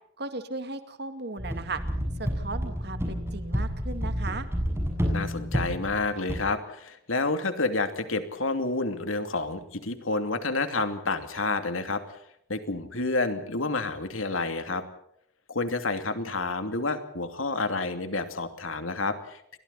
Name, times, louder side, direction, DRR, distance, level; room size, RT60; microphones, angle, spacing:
voice 1, 0.2-1.8 2.2-4.5, right 3 dB, 55° right, 8 dB, 2.2 m, -36 dB
sound 1, 1.4-6.4, equal, 15° right, 7.3 m, -30 dB
voice 2, 5.1-12.2 12.5-14.8 15.5-19.6, left 3 dB, 85° left, 8 dB, 2.8 m, -29 dB
29.5 x 23.5 x 4.2 m, 0.72 s
head